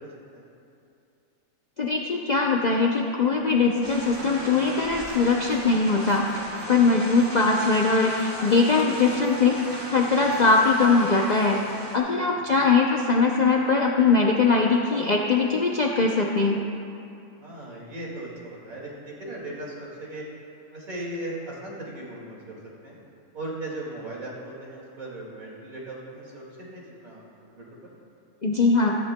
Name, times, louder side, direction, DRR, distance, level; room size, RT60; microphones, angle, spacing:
voice 1, 0.0-0.5 12.5-12.7 17.4-20.2 20.7-23.0 23.3-27.5 27.8-27.9, right 1 dB, 65° right, -4 dB, 2.6 m, -38 dB
voice 2, 1.8-6.2 6.7-9.6 9.9-11.6 11.9-16.6 28.4-29.0, left 4 dB, 60° left, 0 dB, 0.4 m, -21 dB
sound 1, 3.8-12.0, right 1 dB, 20° right, 1.7 m, -37 dB
15.5 x 14.0 x 2.2 m, 2.6 s
omnidirectional pair, 1.6 m